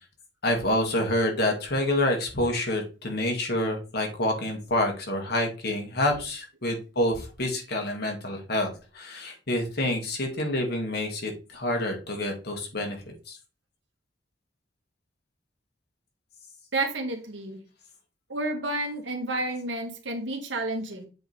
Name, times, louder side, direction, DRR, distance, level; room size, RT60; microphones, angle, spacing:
voice 1, 0.4-13.0 13.3-13.4, left 1 dB, 60° left, 2 dB, 2.1 m, -27 dB
voice 2, 16.7-17.6 18.3-21.0, right 2 dB, 75° right, 3 dB, 1.7 m, -30 dB
7.7 x 3.4 x 4.3 m, 0.33 s
head